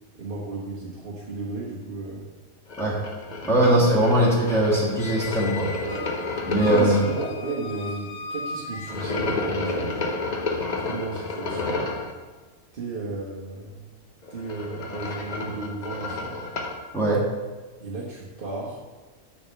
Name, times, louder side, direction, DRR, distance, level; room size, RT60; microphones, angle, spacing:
voice 1, 0.1-2.2 5.8-6.1 6.6-10.0 10.8-11.8 12.7-13.9 14.3-16.4 17.8-18.8, right 3 dB, 40° right, -6 dB, 1.3 m, -34 dB
sound 1, 2.7-7.2 8.9-12.1 14.2-16.8, left 3 dB, 40° left, 0.7 m, -31 dB
voice 2, 3.5-5.7 6.5-7.0 16.9-17.2, right 1 dB, ahead, -6 dB, 1.8 m, -20 dB
Squeak, 5.0-9.5, left 3 dB, 85° left, 1.1 m, -38 dB
6.7 x 4.3 x 6.5 m, 1.3 s
omnidirectional pair, 1.5 m